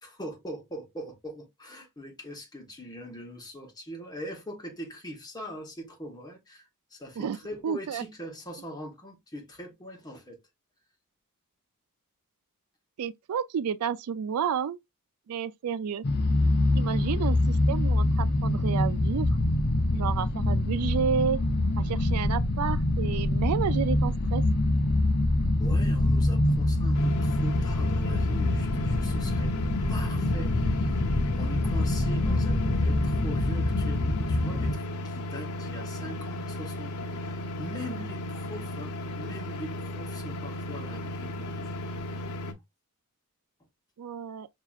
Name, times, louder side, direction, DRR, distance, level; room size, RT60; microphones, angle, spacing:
voice 1, 0.0-10.4 25.6-29.5 29.9-30.9 31.4-41.8, equal, 20° left, 1.3 m, -42 dB
voice 2, 7.6-8.0 13.0-14.8 15.3-16.0 16.8-19.3 19.9-21.4 21.8-24.4 44.0-44.5, right 7 dB, 80° right, 0.4 m, -31 dB
sound 1, 16.0-34.7, left 1 dB, 45° left, 0.5 m, -25 dB
sound 2, 26.9-42.5, left 1 dB, 85° left, 0.8 m, -35 dB
5.8 x 2.8 x 2.4 m
head